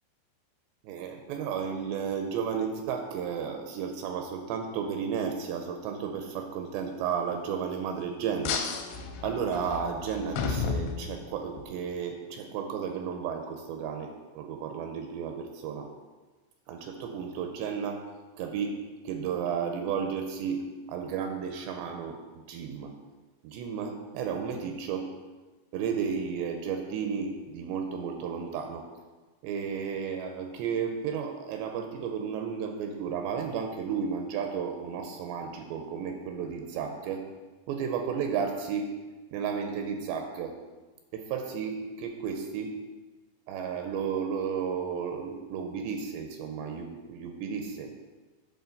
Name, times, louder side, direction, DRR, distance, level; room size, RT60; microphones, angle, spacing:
voice 1, 0.8-8.7 9.2-15.9 16.7-18.0 18.4-23.0 23.4-25.2 25.7-28.9 29.4-37.3 37.7-38.9 39.3-40.6 41.1-42.7 43.5-47.9, right 6 dB, 80° right, 4 dB, 2.7 m, -33 dB
sound 1, 8.4-11.6, left 5 dB, 80° left, 2.7 m, -33 dB
8.1 x 4.4 x 6.5 m, 1.2 s
omnidirectional pair, 5.3 m